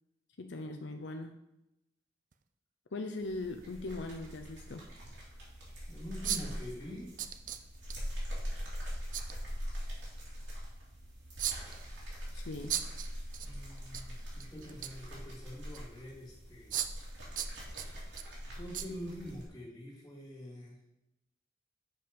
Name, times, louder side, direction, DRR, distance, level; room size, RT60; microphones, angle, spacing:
voice 1, 0.4-1.3 2.9-4.8 12.3-12.8, left 2 dB, 70° left, 5 dB, 0.5 m, -40 dB
sound 1, 2.3-2.4 4.2-4.3 5.0-5.1 6.2-6.6 7.2-7.9 9.1-9.3 11.4-11.9 12.7-13.5 13.8-14.0 14.4-15.1 15.7-15.8 16.7-17.1 17.4-18.2 18.7-18.9 19.3-19.4, right 10 dB, 40° right, 0.4 m, -36 dB
sound 2, 3.2-19.5, equal, 75° right, 3.2 m, -43 dB
voice 2, 5.9-7.1 13.4-16.8 18.5-20.8, equal, 20° left, -4 dB, 2.4 m, -45 dB
7.3 x 5.6 x 5.2 m, 0.88 s
head